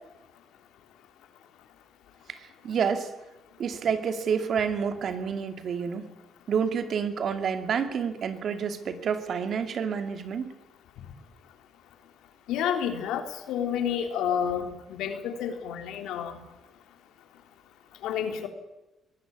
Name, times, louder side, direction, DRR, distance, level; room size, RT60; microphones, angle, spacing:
voice 1, 2.3-3.1 3.6-6.0 6.5-10.5, right 7 dB, 60° right, 9 dB, 2.6 m, -29 dB
voice 2, 12.5-16.4 18.0-18.5, left 8 dB, 90° left, 6 dB, 3.3 m, -30 dB
22.0 x 18.0 x 9.7 m, 0.99 s
cardioid pair, 90°, 0 cm